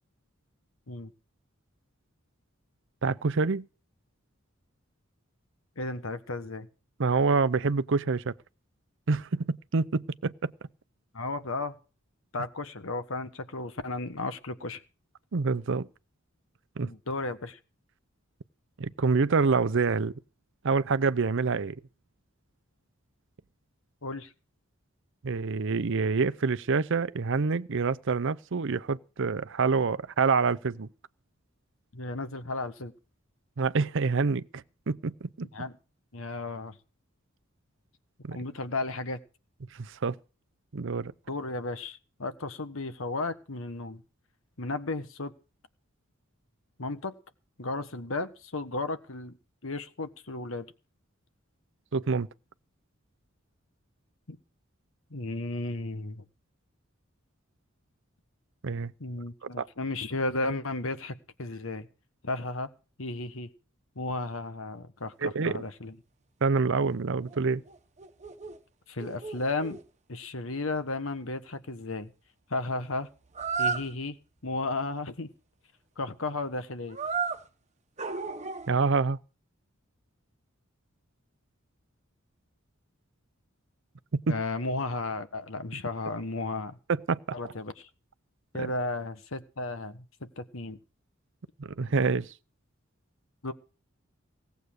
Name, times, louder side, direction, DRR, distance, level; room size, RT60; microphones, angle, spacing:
voice 1, 3.0-3.6 7.0-8.3 9.1-10.5 15.3-15.9 16.8-16.9 18.8-20.1 20.6-21.8 25.2-30.9 33.6-35.5 38.2-38.4 39.8-40.2 40.7-41.1 51.9-52.3 58.6-58.9 59.6-59.7 65.2-65.6 66.4-67.6 78.7-79.2 84.3-84.4 86.9-87.4 88.6-88.7 91.6-92.3, right 4 dB, 65° right, 0.6 m, -27 dB
voice 2, 5.8-6.7 11.1-11.8 12.3-14.8 16.8-17.6 24.0-24.3 31.9-32.9 35.5-35.7 36.1-36.8 38.3-39.2 41.3-44.0 44.6-45.3 46.8-47.1 47.6-49.3 49.6-50.7 54.3-54.4 55.1-56.2 59.0-61.9 62.2-62.7 63.0-63.5 63.9-66.0 68.9-69.8 70.1-72.1 72.5-73.1 73.6-74.2 74.4-75.3 76.0-77.0 84.3-86.8 87.3-87.9 88.5-90.8 93.4-93.5, left 2 dB, 70° left, 1.4 m, -34 dB
sound 1, 66.9-67.0 67.3-67.4 67.7-68.6 69.0-69.8 73.3-73.9 76.9-77.4 78.0-78.8, right 5 dB, 35° right, 1.2 m, -33 dB
17.5 x 8.0 x 6.4 m
head